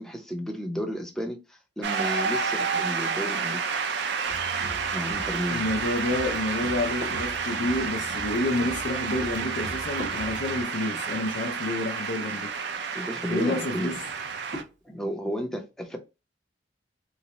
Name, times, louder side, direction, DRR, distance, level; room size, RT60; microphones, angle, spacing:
voice 1, 0.0-3.6 4.9-5.7 12.9-14.0 14.8-16.0, equal, 5° left, 0.6 m, -32 dB
Shout / Cheering / Applause, 1.8-14.6, right 5 dB, 65° right, 0.5 m, -30 dB
sound 1, 4.3-10.6, right 2 dB, 90° right, 1.1 m, -42 dB
voice 2, 5.5-12.5 13.3-14.0, left 2 dB, 65° left, 0.4 m, -29 dB
Drawer open or close / Wood, 10.8-12.0 13.3-14.8, equal, 45° right, 0.9 m, -44 dB
3.9 x 2.1 x 2.9 m
head